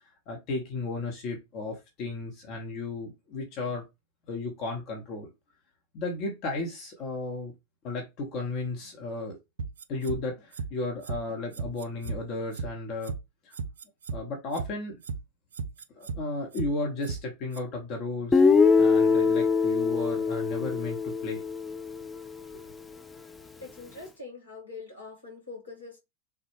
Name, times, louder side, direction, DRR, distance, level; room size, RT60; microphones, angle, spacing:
voice 1, 0.3-3.8 4.3-5.3 5.9-7.5 7.8-9.4 9.9-13.1 13.4-13.5 14.1-15.0 15.9-18.4 18.7-21.4 22.5-22.6, left 2 dB, 40° left, 0.9 m, -34 dB
sound 1, 9.6-10.2 10.5-10.7 11.0-11.2 11.5-12.2 12.5-12.7 13.0-13.2 13.5-14.2 14.5-14.7 15.0-15.2 15.5-16.2 16.5-16.7 17.0-17.2 17.5-17.6, right 5 dB, 65° right, 0.3 m, -34 dB
Guitar, 18.3-22.3, left 5 dB, 10° left, 0.4 m, -23 dB
voice 2, 23.6-26.0, left 3 dB, 80° left, 1.8 m, -43 dB
3.3 x 2.2 x 3.1 m
figure-of-eight pair, 90°, 0 cm